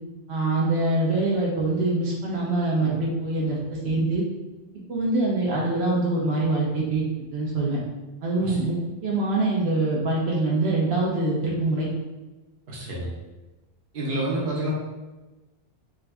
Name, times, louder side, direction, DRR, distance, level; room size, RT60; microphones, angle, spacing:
voice 1, 0.3-4.2 4.9-7.0 7.3-7.8 8.2-11.9, right 2 dB, 85° right, -4 dB, 0.9 m, -24 dB
voice 2, 12.7-13.1 13.9-14.7, right 1 dB, 60° right, -5 dB, 1.1 m, -28 dB
3.6 x 2.5 x 3.3 m, 1.1 s
omnidirectional pair, 1.1 m